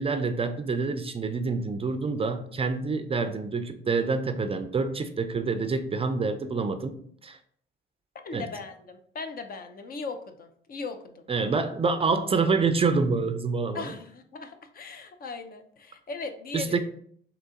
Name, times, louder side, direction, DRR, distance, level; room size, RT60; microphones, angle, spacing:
voice 1, 0.0-7.4 8.3-8.5 11.3-14.0 16.5-16.8, right 4 dB, 30° right, 9 dB, 0.4 m, -27 dB
voice 2, 8.2-11.3 13.7-16.8, left 4 dB, 45° left, 7 dB, 0.6 m, -38 dB
3.9 x 2.8 x 3.7 m, 0.62 s
cardioid pair, 90°, 20 cm